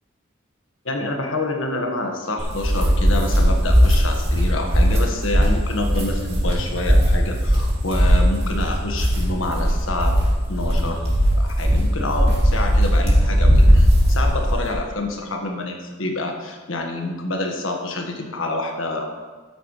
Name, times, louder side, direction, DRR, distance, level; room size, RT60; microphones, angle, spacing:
voice 1, 0.8-10.2 10.5-11.0 11.4-19.1, left 2 dB, 80° left, 2 dB, 1.5 m, -27 dB
sound 1, 2.4-14.7, equal, 30° right, 2.4 m, -18 dB
13.0 x 9.3 x 3.2 m, 1.3 s
head